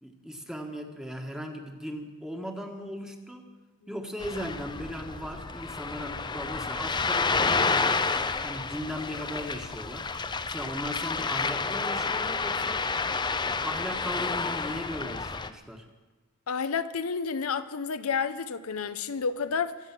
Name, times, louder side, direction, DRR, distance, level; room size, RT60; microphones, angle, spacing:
voice 1, 0.0-3.5 3.9-8.0 8.4-10.1 10.5-12.9 13.4-15.8, equal, 5° right, 1.5 m, -37 dB
Ocean, 4.2-15.5, left 4 dB, 20° left, 0.5 m, -30 dB
voice 2, 16.5-19.8, left 5 dB, 85° left, 0.7 m, -30 dB
24.0 x 8.1 x 6.0 m
head